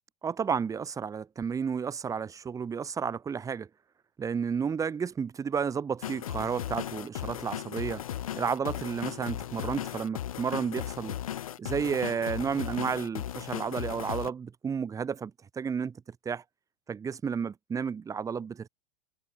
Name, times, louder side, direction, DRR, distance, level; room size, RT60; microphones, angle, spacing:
voice 1, 0.2-3.7 4.2-8.0 8.3-11.1 11.6-16.0 16.2-16.4 16.9-18.7, right 6 dB, 20° right, 1.3 m, -32 dB
sound 1, 6.0-14.3, left 11 dB, 75° left, 0.4 m, -36 dB
figure-of-eight pair, 85°, 18 cm